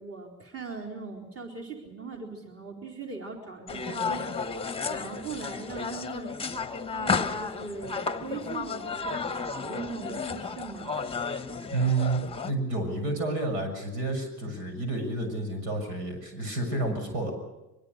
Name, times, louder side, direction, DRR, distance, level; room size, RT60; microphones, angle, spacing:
voice 1, 0.0-6.4 6.9-10.9, right 4 dB, 30° right, 1 dB, 4.1 m, -40 dB
sound 1, 3.7-12.5, left 5 dB, 10° left, 1.2 m, -33 dB
voice 2, 11.7-17.3, right 2 dB, 70° right, 5 dB, 6.8 m, -30 dB
23.5 x 22.5 x 6.6 m, 1.0 s
hypercardioid pair, 70°, 45 cm